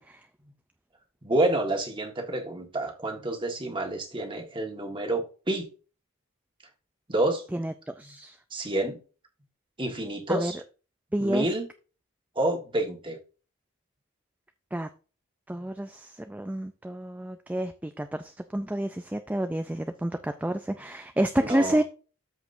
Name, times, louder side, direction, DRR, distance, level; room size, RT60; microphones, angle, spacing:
voice 1, 1.2-5.7 7.1-7.4 8.5-9.0 9.8-10.6 11.2-11.7 12.3-13.2 21.4-21.8, right 1 dB, 20° right, 1.5 m, -28 dB
voice 2, 7.5-8.4 10.3-10.5 11.1-11.4 14.7-14.9 15.5-21.8, right 1 dB, 5° right, 0.3 m, -29 dB
13.5 x 5.0 x 2.6 m
head